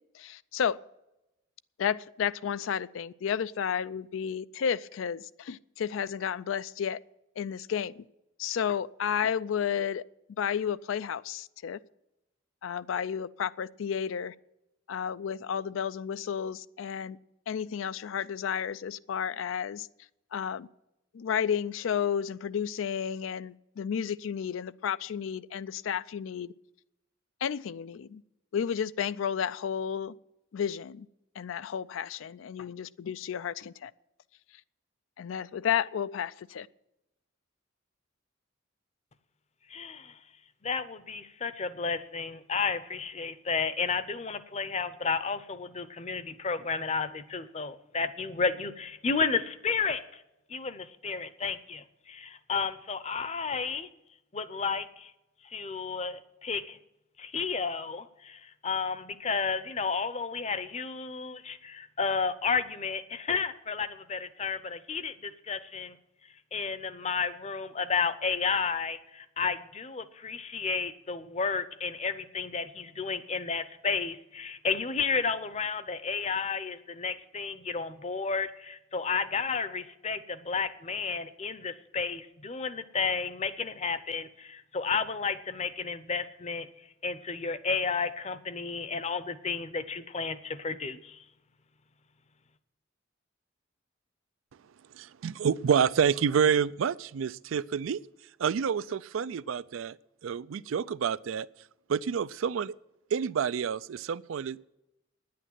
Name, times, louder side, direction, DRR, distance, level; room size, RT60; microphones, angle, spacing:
voice 1, 0.1-0.8 1.8-7.0 7.4-8.0 8.4-10.0 10.4-11.8 12.6-14.3 14.9-17.2 17.5-19.9 20.3-20.7 21.1-26.5 27.4-28.2 28.5-30.1 30.5-31.1 31.4-33.9 35.2-36.7, left 8 dB, 75° left, 0.4 m, -32 dB
voice 2, 39.7-40.2 40.6-50.2 50.5-53.9 54.3-55.1 55.4-56.8 57.2-66.0 66.5-86.7 87.0-91.2, left 5 dB, 35° left, 0.7 m, -32 dB
voice 3, 94.9-98.0 98.4-100.0 100.2-101.5 101.9-102.8 103.1-104.6, right 7 dB, 80° right, 0.4 m, -28 dB
9.9 x 8.6 x 9.0 m
head